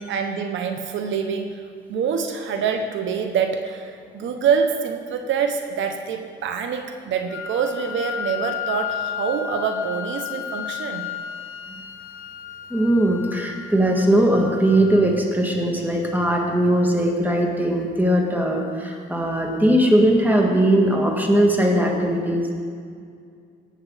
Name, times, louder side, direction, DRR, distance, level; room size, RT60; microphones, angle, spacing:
voice 1, 0.0-11.1, right 6 dB, 75° right, 6 dB, 0.9 m, -25 dB
Wind instrument woodwind instrument, 7.3-15.3, left 9 dB, 85° left, 0.7 m, -33 dB
voice 2, 12.7-22.5, right 1 dB, 10° right, 1 dB, 2.1 m, -19 dB
18.5 x 8.0 x 4.0 m, 2.2 s
cardioid pair, 90°, 20 cm